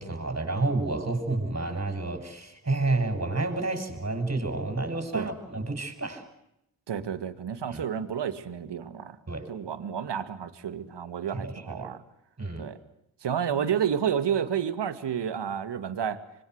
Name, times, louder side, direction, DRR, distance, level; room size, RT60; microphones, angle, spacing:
voice 1, 0.0-6.3 7.7-7.8 9.3-9.5 11.3-11.9 12.4-12.7, right 2 dB, 35° right, 7.5 m, -30 dB
voice 2, 6.9-9.2 9.5-12.0 12.6-12.8 13.2-16.2, right 8 dB, 65° right, 2.4 m, -30 dB
26.0 x 22.5 x 8.2 m
supercardioid pair, 45°, 45 cm